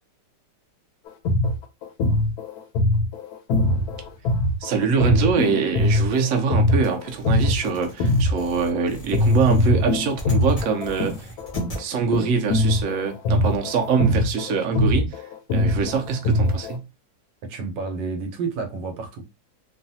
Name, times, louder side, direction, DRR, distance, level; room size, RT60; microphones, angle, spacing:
sound 1, 1.1-8.8 9.1-16.8, left 1 dB, 70° left, 1.0 m, -22 dB
voice 1, 4.6-11.3 11.8-16.9, right 5 dB, 65° right, 0.8 m, -24 dB
sound 2, 6.8-11.8, right 2 dB, 45° left, 0.4 m, -39 dB
voice 2, 17.4-19.2, right 4 dB, 80° right, 1.4 m, -30 dB
3.1 x 2.3 x 2.6 m
omnidirectional pair, 2.0 m